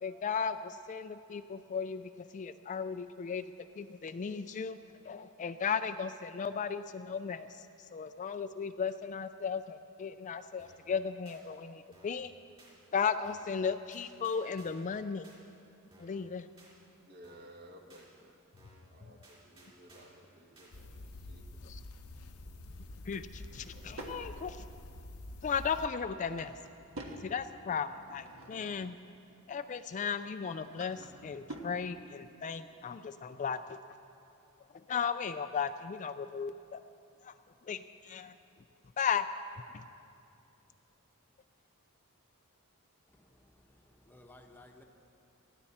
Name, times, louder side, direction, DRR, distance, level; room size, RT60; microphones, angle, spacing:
voice 1, 0.0-3.5 3.8-4.8 5.1-7.7 7.9-12.3 12.9-15.3 16.0-16.5 21.6-21.8 23.0-24.6 25.4-26.5 27.2-29.0 29.5-33.8 34.9-36.8 37.2-37.3 37.7-38.4 39.0-39.3 39.7-39.8, left 6 dB, 35° left, 0.3 m, -36 dB
sound 1, 10.6-10.9 11.3-11.4 11.9-12.2 12.6-12.7 13.2-13.6 13.9-14.9 15.2-15.4 15.9-16.2 16.6-16.7 17.2-17.6 17.9-18.1 18.6-18.9 19.2-20.2 20.6-20.7, right 2 dB, 25° right, 3.9 m, -59 dB
voice 2, 17.1-18.4 18.9-21.6 22.4-22.6, equal, 45° right, 1.4 m, -56 dB
sound 2, 20.7-25.9, left 1 dB, 80° left, 0.8 m, -48 dB
Drawer open or close / Wood, 23.3-24.2 25.9-27.2 27.8-28.9 30.3-31.8, right 1 dB, 65° right, 1.6 m, -48 dB
voice 3, 43.1-44.8, left 2 dB, 10° left, 1.0 m, -58 dB
19.0 x 14.5 x 4.3 m
head